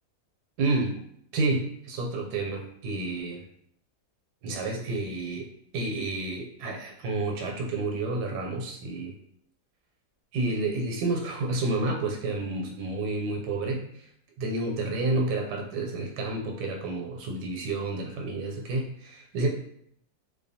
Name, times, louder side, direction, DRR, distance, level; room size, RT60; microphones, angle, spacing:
voice 1, 0.6-1.0 1.3-3.4 4.4-9.2 10.3-13.8 14.4-19.5, right 2 dB, 85° right, 1 dB, 1.1 m, -30 dB
2.6 x 2.2 x 2.6 m, 0.68 s
omnidirectional pair, 1.7 m